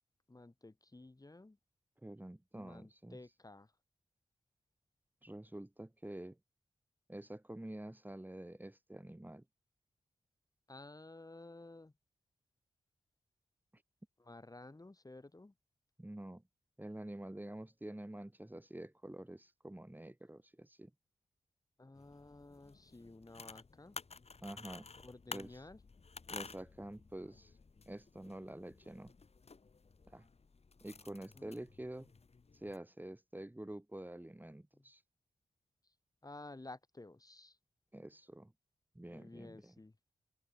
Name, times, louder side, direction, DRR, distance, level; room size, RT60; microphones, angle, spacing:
voice 1, 0.3-1.6 2.5-3.7 10.7-11.9 14.2-15.5 21.8-24.0 25.0-25.8 31.3-31.7 34.7-34.9 36.2-37.6 39.1-39.9, left 2 dB, 30° left, 7.2 m, -53 dB
voice 2, 2.0-3.2 5.2-6.4 7.1-9.4 16.0-16.4 16.8-20.9 24.4-24.9 25.3-25.5 26.3-27.5 27.9-29.1 30.1-30.3 30.8-32.1 32.5-35.0 37.9-38.5 38.9-39.7, right 1 dB, 15° right, 6.1 m, -48 dB
sound 1, 22.0-32.8, left 4 dB, 55° left, 4.1 m, -53 dB
cardioid pair, 55°, 13 cm